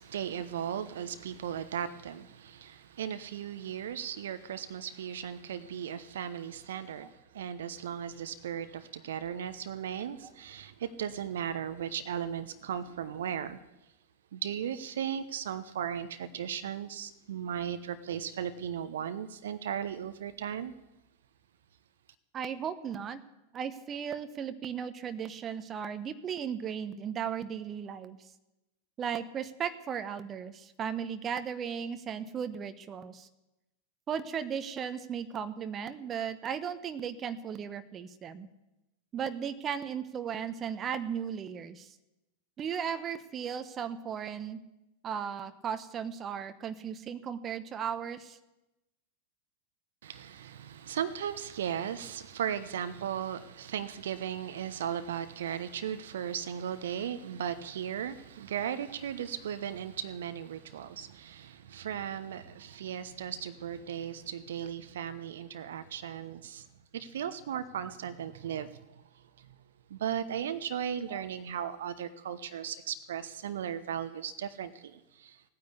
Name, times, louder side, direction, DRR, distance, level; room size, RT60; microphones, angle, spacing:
voice 1, 0.0-13.6 14.3-20.7 50.0-66.7 66.9-69.5 69.9-75.4, right 9 dB, 60° right, 0.9 m, -36 dB
voice 2, 22.3-23.2 23.5-28.2 29.0-33.3 34.1-38.5 39.1-42.0 42.6-44.6 45.0-48.4 71.1-71.2, right 8 dB, 25° right, 0.9 m, -36 dB
17.5 x 9.6 x 8.2 m
figure-of-eight pair, 90°, 0 cm